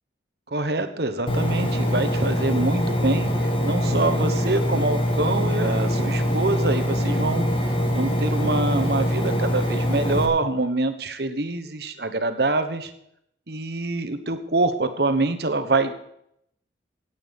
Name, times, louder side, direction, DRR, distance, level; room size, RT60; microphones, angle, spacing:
voice 1, 0.5-7.4 7.9-12.9 13.5-15.9, right 2 dB, 60° right, 9 dB, 1.2 m, -25 dB
Engine, 1.3-10.3, equal, 30° left, 1.8 m, -23 dB
17.5 x 8.5 x 5.4 m, 0.75 s
head